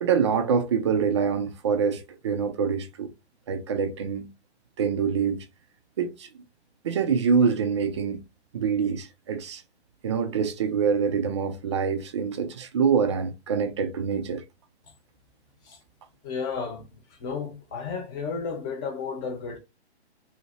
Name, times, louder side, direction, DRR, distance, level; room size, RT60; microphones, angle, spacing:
voice 1, 0.0-3.1 3.5-4.3 4.8-5.4 6.0-6.3 6.8-8.2 8.5-9.6 10.0-14.4, right 6 dB, 25° right, 0.4 m, -25 dB
voice 2, 16.2-16.8 17.2-19.6, left 5 dB, 25° left, 1.0 m, -32 dB
2.8 x 2.8 x 2.8 m
hypercardioid pair, 145°, 33 cm